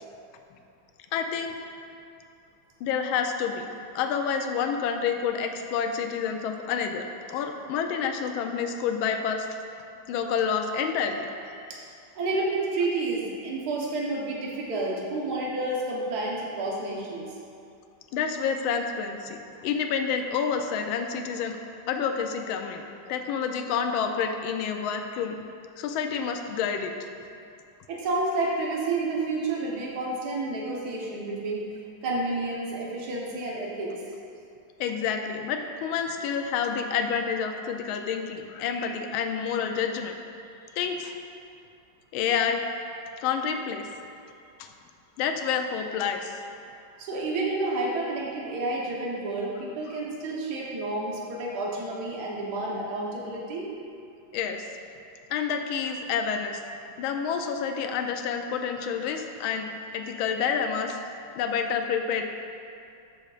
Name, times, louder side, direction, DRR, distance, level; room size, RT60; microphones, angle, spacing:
voice 1, 1.1-1.5 2.8-3.7 3.9-9.5 10.1-11.5 18.1-21.6 21.9-25.4 25.8-26.9 34.8-40.2 40.8-41.2 42.1-42.6 43.2-43.9 44.6-44.7 45.2-46.4 49.9-50.0 54.3-54.7 55.3-56.6 57.0-59.7 59.9-61.0 61.4-62.2, left 6 dB, 80° left, 5 dB, 1.4 m, -28 dB
voice 2, 12.1-17.3 27.9-31.6 32.0-33.9 47.0-53.7, right 2 dB, 55° right, -3 dB, 1.6 m, -30 dB
13.0 x 6.2 x 2.4 m, 2.5 s
omnidirectional pair, 2.2 m